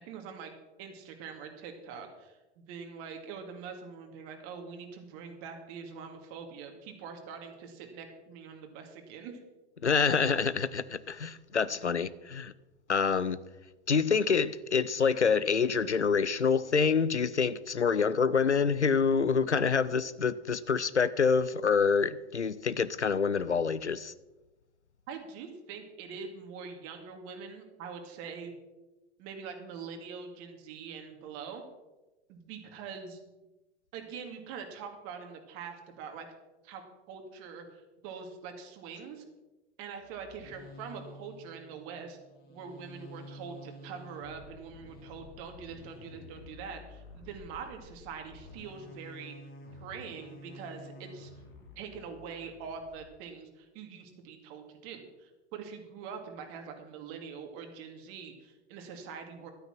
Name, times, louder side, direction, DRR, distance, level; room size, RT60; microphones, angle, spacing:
voice 1, 0.1-0.5 0.8-9.3 11.7-11.9 25.1-28.5 29.2-31.6 32.3-33.2 33.9-36.3 36.6-36.8 37.1-39.2 39.8-42.2 42.5-49.3 49.8-51.3 51.8-59.5, right 6 dB, 40° right, 4 dB, 2.3 m, -44 dB
voice 2, 9.8-12.5 12.9-13.4 13.9-24.1, left 5 dB, 90° left, 17 dB, 0.6 m, -27 dB
sound 1, 40.0-53.1, left 1 dB, 40° left, 2.7 m, -50 dB
12.5 x 9.1 x 6.1 m, 1.1 s
figure-of-eight pair, 90°, 34 cm